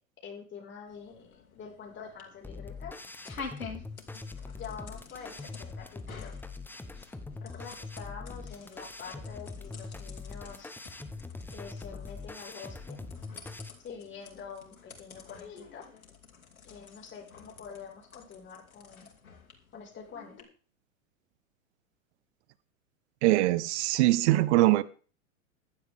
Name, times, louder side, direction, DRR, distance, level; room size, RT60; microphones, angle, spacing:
voice 1, 0.2-3.0 4.5-6.3 7.4-10.7 11.5-13.0 13.8-15.9 16.6-19.1 19.7-20.3, left 6 dB, 25° left, 5.2 m, -46 dB
sound 1, 0.9-20.4, left 5 dB, 85° left, 3.3 m, -50 dB
sound 2, 2.4-13.7, left 3 dB, 5° left, 1.0 m, -43 dB
voice 2, 23.2-24.8, right 17 dB, 55° right, 1.0 m, -22 dB
15.5 x 11.5 x 3.7 m
hypercardioid pair, 105°, 41 cm